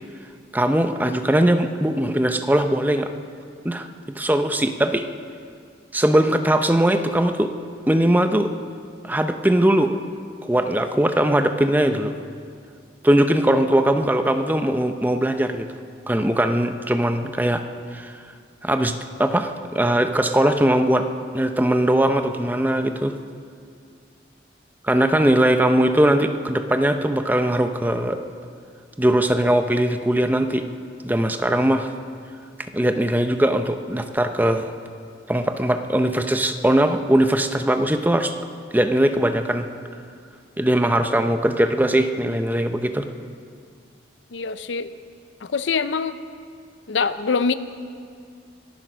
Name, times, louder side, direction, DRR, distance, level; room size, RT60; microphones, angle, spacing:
voice 1, 0.5-3.1 3.6-3.9 4.1-5.1 5.9-7.5 7.9-8.5 9.0-9.9 10.4-12.1 13.0-15.7 16.1-17.6 17.9-18.1 18.6-21.1 21.3-23.1 24.8-28.2 29.0-30.6 31.0-31.9 32.7-34.7 35.3-38.3 38.7-39.7 40.6-43.1, right 1 dB, 10° right, 7 dB, 0.6 m, -20 dB
voice 2, 44.3-44.9 45.4-46.2 46.9-47.5, left 5 dB, 75° left, 13 dB, 0.6 m, -24 dB
24.5 x 9.1 x 6.2 m, 2.2 s
head